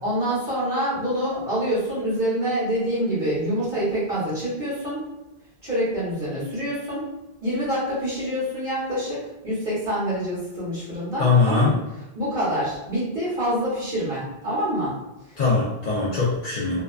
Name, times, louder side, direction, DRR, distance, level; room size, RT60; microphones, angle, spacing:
voice 1, 0.0-5.0 5.6-7.0 7.4-11.8 12.1-15.0 15.3-15.4, equal, 60° right, -10 dB, 1.3 m, -26 dB
voice 2, 11.2-11.8 15.4-16.8, left 4 dB, 50° left, -6 dB, 0.5 m, -21 dB
2.8 x 2.2 x 2.3 m, 0.97 s
omnidirectional pair, 1.1 m